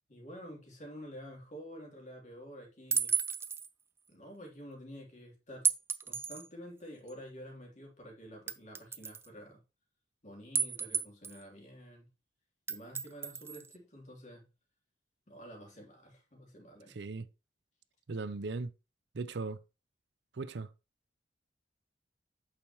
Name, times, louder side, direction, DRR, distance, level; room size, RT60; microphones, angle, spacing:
voice 1, 0.1-3.1 4.1-5.7 6.0-9.6 10.2-12.1 12.7-14.5 15.3-17.0, equal, 40° left, 3.2 m, -49 dB
sound 1, 2.9-3.7 5.6-6.5 7.1-7.2 8.5-9.3 10.5-11.4 12.7-13.7, right 6 dB, 15° right, 0.4 m, -33 dB
voice 2, 16.9-17.3 18.1-18.7 19.1-19.6 20.3-20.7, right 3 dB, 65° right, 0.6 m, -38 dB
8.6 x 6.5 x 3.0 m
head